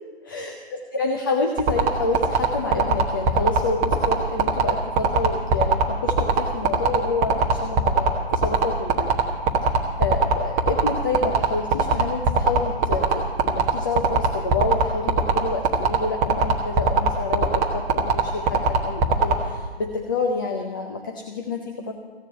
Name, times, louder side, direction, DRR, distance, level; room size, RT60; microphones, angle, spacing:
voice 1, 0.3-9.2 10.0-21.9, left 3 dB, 20° left, 3 dB, 0.5 m, -28 dB
sound 1, 1.6-19.3, right 5 dB, 15° right, 0.8 m, -19 dB
15.5 x 7.3 x 8.6 m, 1.4 s
figure-of-eight pair, 140°, 33 cm